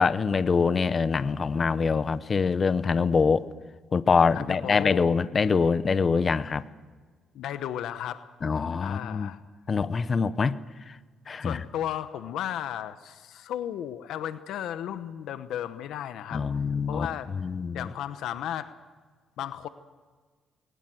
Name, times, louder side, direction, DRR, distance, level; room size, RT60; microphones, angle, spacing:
voice 1, 0.0-3.5 3.9-6.6 8.4-9.3 9.7-10.6 11.3-11.6 16.3-17.1 17.4-17.9, left 5 dB, 40° left, 15 dB, 0.8 m, -24 dB
voice 2, 4.3-5.1 7.3-8.2 8.8-9.4 11.4-16.4 16.9-17.3 17.7-18.8 19.4-19.7, left 10 dB, 85° left, 11 dB, 1.0 m, -34 dB
21.5 x 19.5 x 7.8 m, 1.5 s
cardioid pair, 90°, 0 cm